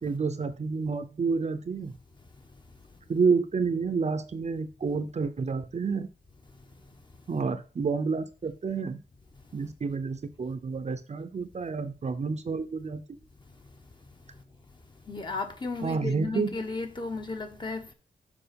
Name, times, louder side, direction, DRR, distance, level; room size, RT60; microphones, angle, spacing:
voice 1, 0.0-1.9 3.1-6.1 7.3-9.0 9.5-13.0 15.8-16.6, right 4 dB, 45° right, 0.7 m, -29 dB
voice 2, 15.1-17.9, left 3 dB, 25° left, 1.0 m, -34 dB
6.9 x 4.9 x 5.2 m
wide cardioid pair, 160°, 17 cm